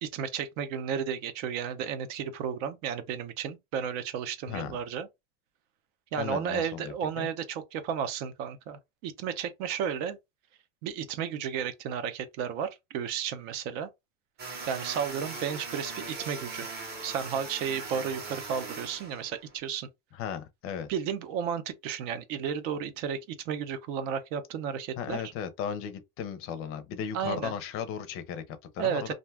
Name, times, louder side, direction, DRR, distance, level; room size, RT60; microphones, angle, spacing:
voice 1, 0.0-5.1 6.1-10.2 10.8-13.9 14.7-16.7 17.0-19.9 20.9-25.2 27.1-27.5 28.8-29.1, right 7 dB, 75° right, 0.7 m, -33 dB
voice 2, 6.2-7.3 20.1-20.9 25.0-29.1, left 8 dB, 35° left, 0.5 m, -36 dB
sound 1, 14.4-19.6, right 3 dB, 25° right, 0.7 m, -40 dB
2.5 x 2.3 x 3.2 m
cardioid pair, 160°, 39 cm